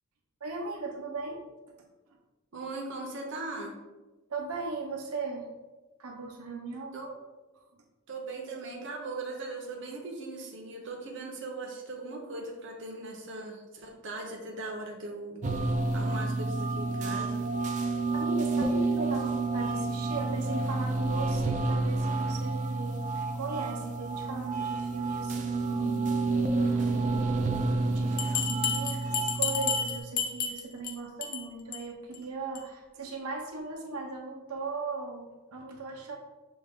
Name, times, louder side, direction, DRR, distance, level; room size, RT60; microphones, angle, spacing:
voice 1, 0.4-1.4 4.3-5.5 6.0-7.0 18.1-26.1 26.6-27.4 27.9-36.2, right 3 dB, 85° right, 0 dB, 0.7 m, -38 dB
voice 2, 2.5-3.7 6.9-7.1 8.1-15.4 15.9-17.5, right 2 dB, 55° right, 0 dB, 0.8 m, -39 dB
sound 1, 15.4-30.0, right 3 dB, 35° right, 0.4 m, -29 dB
Bell, 28.2-30.9 31.2-31.4 31.7-31.8 32.1-32.2 32.5-32.6, left 6 dB, 40° left, 0.6 m, -31 dB
6.2 x 2.4 x 3.5 m, 1.2 s
head